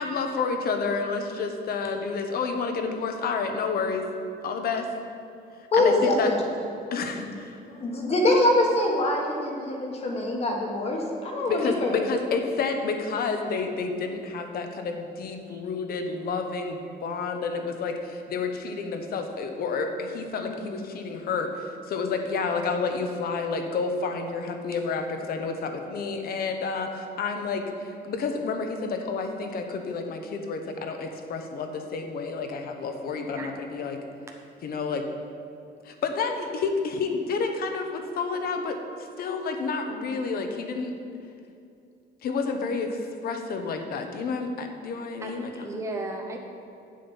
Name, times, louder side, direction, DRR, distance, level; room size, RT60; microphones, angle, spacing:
voice 1, 0.0-4.1 4.4-4.9 5.8-6.3 6.9-7.6 11.5-34.0 34.6-35.1 35.8-40.9 42.2-45.7, left 4 dB, 55° left, 5 dB, 0.9 m, -30 dB
voice 2, 5.7-6.4 7.7-12.0 20.4-20.6, left 1 dB, 35° left, 0 dB, 1.4 m, -24 dB
voice 3, 45.2-46.4, right 2 dB, 15° right, 1 dB, 0.7 m, -35 dB
8.6 x 7.6 x 5.4 m, 2.5 s
cardioid pair, 165°, 18 cm